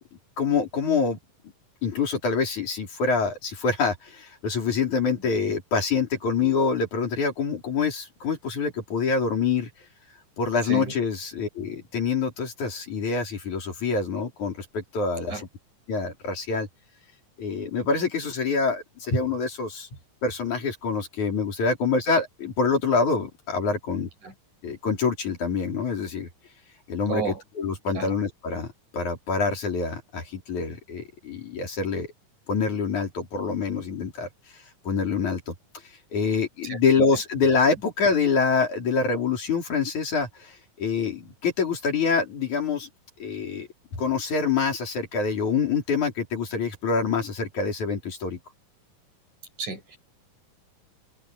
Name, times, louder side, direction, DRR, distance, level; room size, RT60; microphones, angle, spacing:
voice 1, 0.4-1.2 1.8-9.7 10.4-15.4 15.9-16.7 17.4-19.9 20.2-24.1 24.6-26.3 26.9-28.7 28.9-32.1 32.5-34.3 34.8-35.5 36.1-42.9 43.2-43.7 44.0-48.4, left 5 dB, 55° left, 5.6 m, -26 dB
voice 2, 27.1-27.4 27.9-28.1 36.7-36.8 49.6-50.0, right 5 dB, 60° right, 7.4 m, -31 dB
omnidirectional pair, 4.0 m